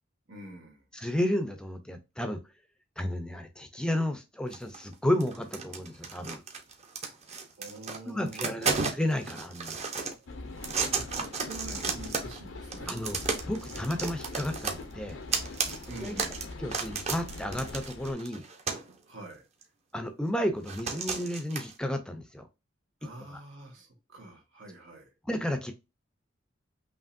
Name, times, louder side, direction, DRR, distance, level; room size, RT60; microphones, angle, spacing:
voice 1, 0.3-0.8 7.6-8.7 10.5-13.0 15.9-16.5 19.1-19.5 23.0-25.1, right 2 dB, 90° right, 1.7 m, -46 dB
voice 2, 0.9-2.4 3.0-6.4 8.1-9.8 12.9-13.2 13.4-15.2 16.0-16.2 16.6-18.4 19.9-22.5 23.3-23.4 25.3-25.7, left 1 dB, 5° left, 0.5 m, -32 dB
sound 1, 4.5-4.9 5.2-10.1 10.6-12.4 12.7-18.9 19.6-19.7 20.7-21.7, right 4 dB, 35° right, 0.8 m, -33 dB
sound 2, 10.3-18.1, left 2 dB, 85° left, 0.7 m, -42 dB
5.1 x 2.9 x 2.5 m
head